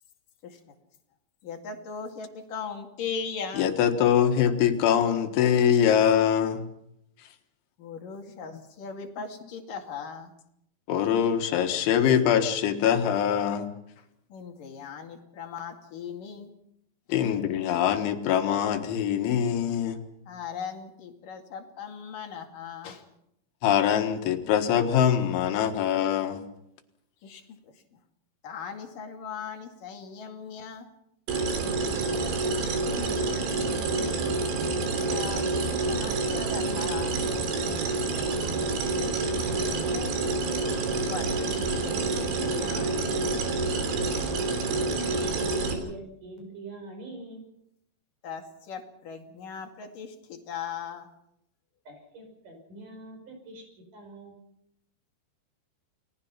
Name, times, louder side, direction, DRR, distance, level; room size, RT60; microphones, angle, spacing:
voice 1, 0.4-0.7 1.4-3.7 7.8-10.3 14.0-16.5 17.1-17.2 20.3-23.1 27.2-28.0 28.4-30.9 34.7-37.2 41.0-43.3 48.2-51.1, left 6 dB, 55° left, 3 dB, 3.5 m, -39 dB
voice 2, 3.6-6.7 10.9-13.7 17.1-20.0 23.6-26.4, left 9 dB, 90° left, 7 dB, 4.0 m, -23 dB
sound 1, 31.3-45.7, right 3 dB, 80° right, 5.5 m, -28 dB
voice 3, 31.6-34.1 37.8-40.3 45.1-47.4 51.9-53.6 53.9-54.4, right 1 dB, 45° right, 3 dB, 7.1 m, -44 dB
29.5 x 19.5 x 5.9 m, 0.79 s
omnidirectional pair, 5.2 m